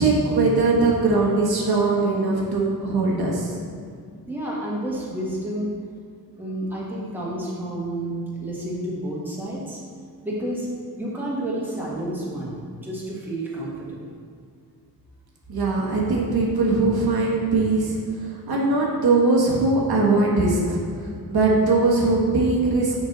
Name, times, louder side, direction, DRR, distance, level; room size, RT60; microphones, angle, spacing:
voice 1, 0.0-3.6 15.5-18.0 18.5-20.8 21.3-22.9, right 3 dB, 65° right, -4 dB, 1.3 m, -20 dB
voice 2, 4.3-5.7 6.4-9.8 10.2-10.7 11.0-12.6 12.8-14.0, right 1 dB, 5° right, -6 dB, 1.5 m, -30 dB
6.1 x 5.3 x 3.9 m, 2.2 s
wide cardioid pair, 110°, 40 cm